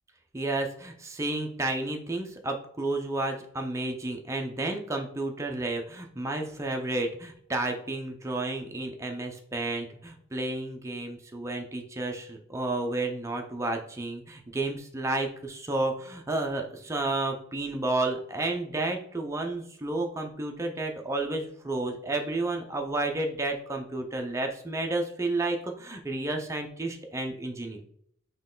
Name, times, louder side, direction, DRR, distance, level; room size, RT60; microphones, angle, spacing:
voice 1, 0.3-27.8, right 2 dB, 15° right, 2 dB, 0.5 m, -31 dB
4.5 x 3.0 x 3.8 m, 0.66 s
head